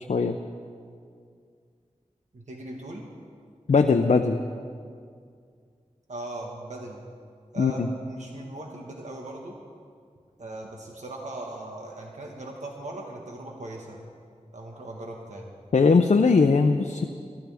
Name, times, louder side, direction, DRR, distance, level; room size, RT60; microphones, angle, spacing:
voice 1, 2.3-3.1 6.1-7.0 7.5-9.6 10.4-14.0 14.5-15.5, right 2 dB, 75° right, -1 dB, 1.6 m, -39 dB
voice 2, 3.7-4.4 7.6-7.8 15.7-17.0, left 4 dB, 65° left, 5 dB, 0.6 m, -20 dB
23.0 x 14.0 x 3.6 m, 2.2 s
wide cardioid pair, 70°, 12 cm